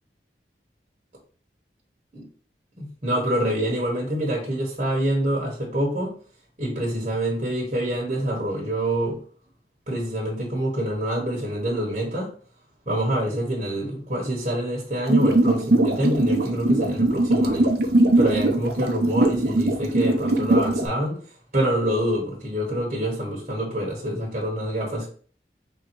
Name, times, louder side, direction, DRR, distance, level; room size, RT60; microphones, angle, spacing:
voice 1, 2.8-6.1 6.6-9.2 9.9-12.3 12.9-17.7 18.2-21.2 21.5-25.1, right 1 dB, 40° right, -2 dB, 1.2 m, -26 dB
sound 1, 15.1-20.9, right 2 dB, 60° right, 0.6 m, -20 dB
3.6 x 2.8 x 4.4 m, 0.43 s
head